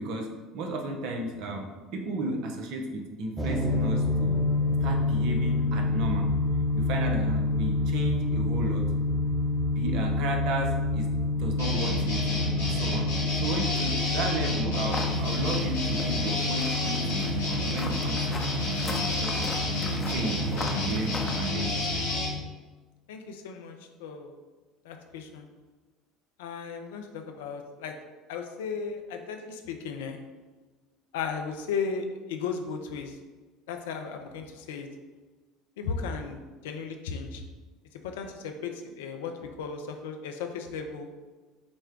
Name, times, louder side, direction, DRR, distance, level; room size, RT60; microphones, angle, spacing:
voice 1, 0.0-4.4 4.8-6.3 6.7-8.9 9.8-11.1 11.4-12.3 12.6-13.1 13.4-18.5 18.9-22.0, right 2 dB, 60° right, 3 dB, 0.7 m, -34 dB
sound 1, 3.4-22.4, left 2 dB, 5° right, 0.9 m, -28 dB
sound 2, 11.6-22.3, left 1 dB, 85° left, 1.3 m, -31 dB
sound 3, 14.9-21.5, left 2 dB, 25° left, 0.7 m, -40 dB
voice 2, 23.1-24.4 24.8-25.5 26.4-27.9 28.3-30.2 31.1-33.2 33.7-34.9 35.8-37.4 37.9-41.1, left 5 dB, 70° left, 5 dB, 0.5 m, -35 dB
6.1 x 2.2 x 3.6 m, 1.3 s
hypercardioid pair, 65°, 0 cm